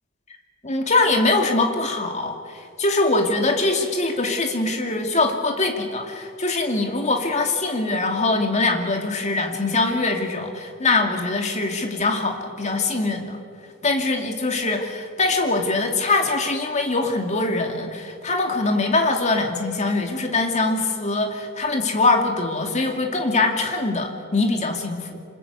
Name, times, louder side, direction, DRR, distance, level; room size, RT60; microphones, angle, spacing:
voice 1, 0.6-13.4 13.8-25.2, left 3 dB, 35° left, 3 dB, 2.6 m, -23 dB
26.0 x 21.0 x 8.3 m, 2.2 s
head